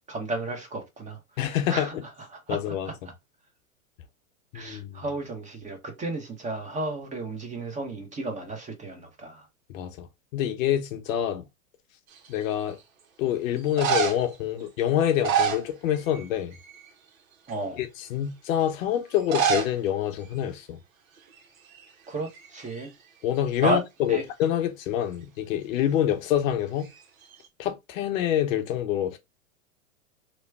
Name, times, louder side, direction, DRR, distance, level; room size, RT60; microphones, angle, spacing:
voice 1, 0.1-1.9 2.3-2.9 4.5-9.5 11.1-11.3 17.5-17.8 22.1-22.9 23.6-23.8 24.1-24.2, right 2 dB, 15° right, 0.9 m, -33 dB
voice 2, 1.4-2.0 2.5-2.9 4.5-5.0 9.7-10.1 10.3-11.5 12.3-12.8 13.2-16.5 17.8-20.8 23.2-26.9 27.6-29.2, left 10 dB, 65° left, 0.8 m, -26 dB
sound 1, 12.1-12.6 13.6-14.4 15.0-16.3 16.5-16.9 17.5-17.6 19.2-19.7 20.0-20.1 20.3-20.4 21.2-21.4 21.7-22.9 26.8-27.5, right 7 dB, 70° right, 1.0 m, -28 dB
3.0 x 2.2 x 3.4 m
hypercardioid pair, 110°, 42 cm